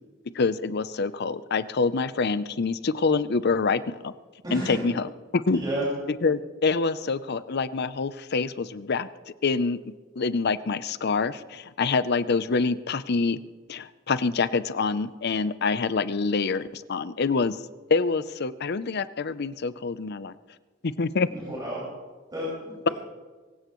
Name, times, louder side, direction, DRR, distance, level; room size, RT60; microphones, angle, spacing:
voice 1, 0.4-4.1 4.5-5.1 5.3-5.6 6.2-9.1 9.4-9.8 10.2-13.4 13.7-17.6 17.9-20.3 20.8-21.3, left 4 dB, 55° left, 14 dB, 0.6 m, -26 dB
voice 2, 4.4-4.8 5.5-5.9 21.3-21.8 22.3-22.9, right 1 dB, 20° right, -8 dB, 5.4 m, -31 dB
24.5 x 16.0 x 3.1 m, 1.4 s
head